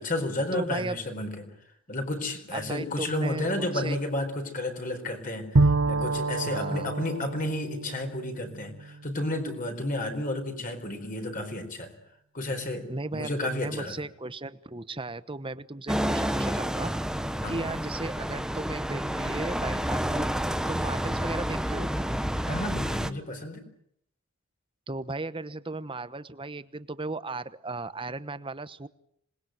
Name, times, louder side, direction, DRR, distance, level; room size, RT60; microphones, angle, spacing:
voice 1, 0.0-1.5 1.9-11.9 12.3-14.0 17.4-17.7 22.4-23.7, left 1 dB, 40° left, 5 dB, 4.5 m, -32 dB
voice 2, 0.5-1.0 2.5-4.0 6.5-6.9 12.9-16.9 17.5-20.3 20.7-21.9 24.9-28.9, right 2 dB, 25° right, 13 dB, 1.0 m, -36 dB
Bowed string instrument, 5.5-9.3, right 3 dB, 85° right, 1.2 m, -27 dB
sound 1, 15.9-23.1, equal, 5° right, 1.0 m, -29 dB
26.5 x 20.5 x 9.2 m, 0.72 s
head